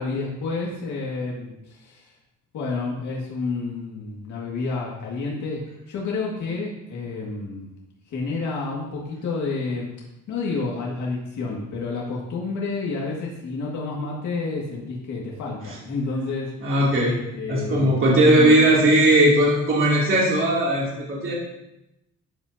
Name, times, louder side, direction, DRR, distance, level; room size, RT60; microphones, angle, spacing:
voice 1, 0.0-2.1 2.5-7.7 8.1-9.9 10.3-18.0 18.2-18.8, left 3 dB, 65° left, -3 dB, 2.1 m, -30 dB
voice 2, 16.6-17.1 17.5-21.3, right 1 dB, 40° right, -6 dB, 2.8 m, -18 dB
13.0 x 8.2 x 2.8 m, 0.88 s
cardioid pair, 130°, 32 cm